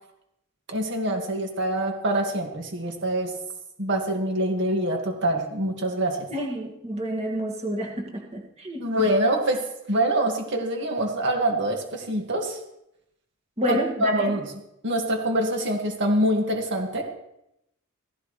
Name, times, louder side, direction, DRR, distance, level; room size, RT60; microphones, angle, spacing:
voice 1, 0.7-3.3 3.8-6.2 8.8-9.6 9.9-12.6 13.7-14.5 14.8-17.0, right 1 dB, 55° right, 2 dB, 2.0 m, -25 dB
voice 2, 6.3-9.1 13.6-14.3, right 1 dB, 30° right, 0 dB, 2.1 m, -29 dB
16.0 x 16.0 x 3.3 m, 0.83 s
head